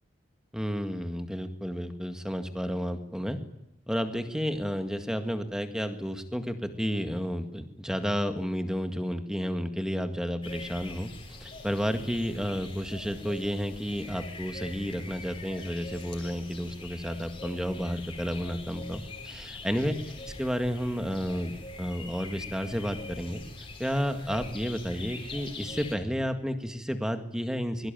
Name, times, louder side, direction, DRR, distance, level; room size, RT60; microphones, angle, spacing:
voice 1, 0.5-3.4 3.9-19.9 20.4-27.9, equal, 5° right, 7 dB, 1.9 m, -31 dB
sound 1, 10.4-26.0, left 3 dB, 25° left, 5.0 m, -43 dB
23.5 x 22.5 x 9.2 m, 0.87 s
head